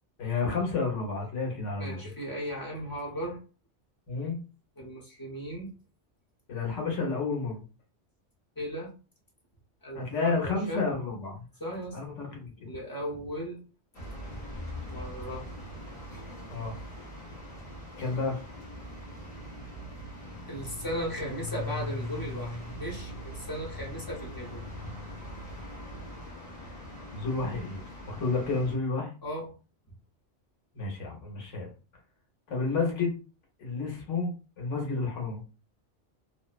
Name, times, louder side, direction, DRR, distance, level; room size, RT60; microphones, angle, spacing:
voice 1, 0.2-2.1 4.1-4.4 6.5-7.6 9.9-11.4 11.9-12.5 16.5-16.7 18.0-18.4 27.1-29.1 30.7-31.7 32.5-33.2 33.6-35.4, left 4 dB, 80° left, 0 dB, 1.2 m, -31 dB
voice 2, 1.8-3.4 4.8-5.7 8.6-8.9 9.8-10.8 11.6-12.0 12.6-13.6 14.8-15.4 20.5-24.9 29.2-29.5, equal, 25° left, -3 dB, 0.6 m, -37 dB
sound 1, 13.9-28.7, left 1 dB, 45° left, 1.2 m, -41 dB
2.6 x 2.0 x 2.4 m, 0.34 s
omnidirectional pair, 1.2 m